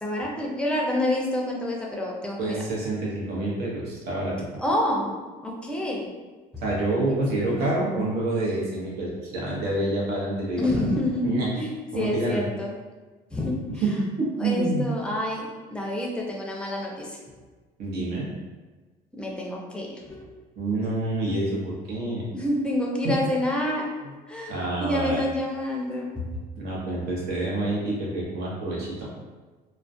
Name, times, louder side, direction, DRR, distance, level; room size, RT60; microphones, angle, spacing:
voice 1, 0.0-2.6 4.6-5.1 5.4-6.1 7.1-7.7 10.6-12.8 13.3-13.6 14.4-17.1 19.1-20.3 22.3-23.9 24.3-26.1, left 1 dB, 5° left, -2 dB, 0.5 m, -28 dB
voice 2, 2.4-4.4 6.6-10.8 11.2-11.5 11.9-12.5 13.8-13.9 14.2-14.9 17.8-18.3 20.6-22.2 23.0-23.2 24.5-25.2 26.6-29.1, right 2 dB, 75° right, -4 dB, 0.8 m, -27 dB
2.3 x 2.1 x 2.6 m, 1.3 s
cardioid pair, 110°, 17 cm